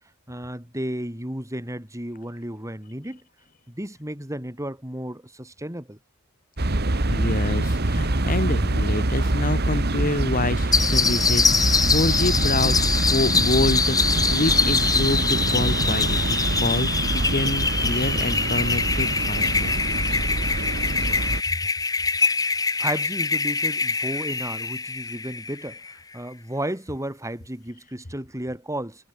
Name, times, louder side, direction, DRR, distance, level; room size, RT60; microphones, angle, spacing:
voice 1, 0.3-3.2 3.7-6.0 22.8-29.1, right 1 dB, 15° right, 7.1 m, -33 dB
sound 1, 6.6-21.4, right 2 dB, 50° right, 1.7 m, -25 dB
voice 2, 7.1-19.8, left 2 dB, 40° left, 2.4 m, -27 dB
sound 2, 10.7-25.9, left 4 dB, 20° left, 1.4 m, -24 dB
head